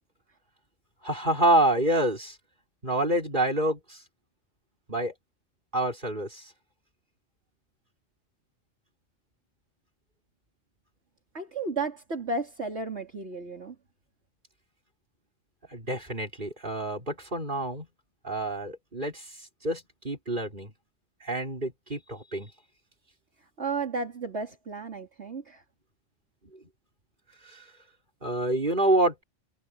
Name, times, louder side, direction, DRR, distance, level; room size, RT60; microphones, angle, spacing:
voice 1, 1.0-2.4 2.8-4.0 4.9-5.1 5.7-6.5 15.7-17.9 18.2-20.7 21.2-22.5 26.5-26.7 27.4-27.7 28.2-29.2, right 1 dB, 40° right, 5.7 m, -27 dB
voice 2, 11.3-13.7 23.6-25.6, right 3 dB, 60° right, 3.2 m, -33 dB
omnidirectional pair, 1.3 m